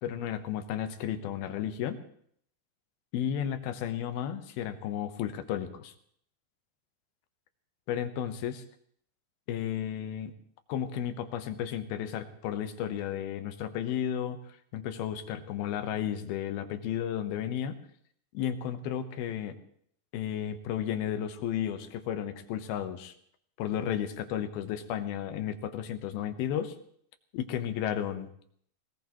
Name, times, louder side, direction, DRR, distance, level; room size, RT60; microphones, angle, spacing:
voice 1, 0.0-2.0 3.1-5.9 7.9-8.6 9.5-10.3 10.7-14.4 14.7-17.8 18.3-19.6 20.1-23.1 23.6-26.7 27.3-28.3, left 10 dB, 75° left, 9 dB, 2.8 m, -33 dB
21.0 x 19.0 x 3.1 m, 0.64 s
omnidirectional pair, 4.6 m